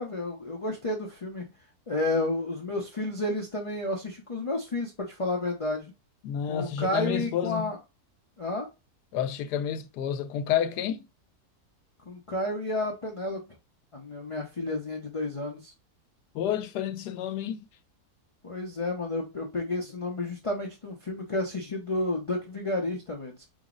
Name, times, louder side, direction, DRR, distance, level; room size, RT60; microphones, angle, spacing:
voice 1, 0.0-1.5 1.9-5.9 6.5-7.8 8.4-8.7 12.1-13.4 13.9-15.7 18.4-23.5, left 2 dB, 55° left, 0.3 m, -31 dB
voice 2, 6.2-7.7 9.1-11.0 16.3-17.6, left 9 dB, 85° left, 1.2 m, -30 dB
5.0 x 2.0 x 3.6 m
omnidirectional pair, 1.7 m